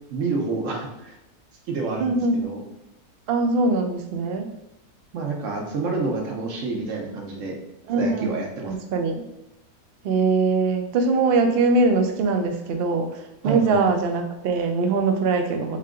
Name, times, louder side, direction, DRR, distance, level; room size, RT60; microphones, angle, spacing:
voice 1, 0.1-1.2 1.7-2.6 5.1-7.6 8.0-8.7 13.4-13.8, right 3 dB, 60° right, 1 dB, 1.1 m, -28 dB
voice 2, 2.0-2.5 3.3-4.5 7.9-8.3 8.7-9.2 10.0-15.8, right 3 dB, 85° right, 5 dB, 0.5 m, -22 dB
3.6 x 2.7 x 3.7 m, 0.92 s
omnidirectional pair, 1.7 m